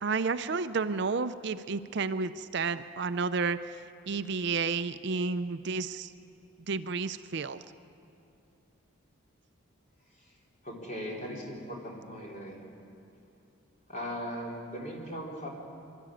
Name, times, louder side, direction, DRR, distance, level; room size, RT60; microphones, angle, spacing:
voice 1, 0.0-3.6 4.1-6.1 6.7-7.6, right 4 dB, 55° right, 12 dB, 0.5 m, -31 dB
voice 2, 10.6-12.6 13.9-15.5, equal, 35° left, -2 dB, 3.9 m, -39 dB
24.5 x 13.0 x 10.0 m, 2.7 s
head